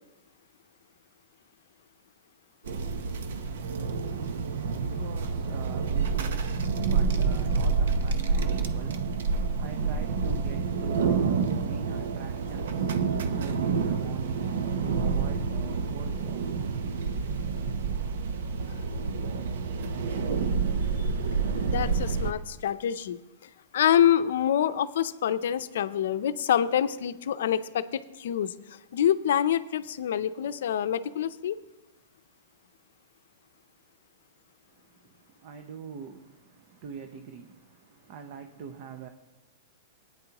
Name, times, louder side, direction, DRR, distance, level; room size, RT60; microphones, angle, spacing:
sound 1, 2.7-22.3, right 5 dB, 75° right, 0.9 m, -28 dB
voice 1, 4.2-16.8 34.7-39.1, right 6 dB, 45° right, 0.8 m, -44 dB
voice 2, 21.5-31.6, left 10 dB, 75° left, 0.6 m, -26 dB
18.0 x 9.8 x 3.0 m
hypercardioid pair, 155°, 0 cm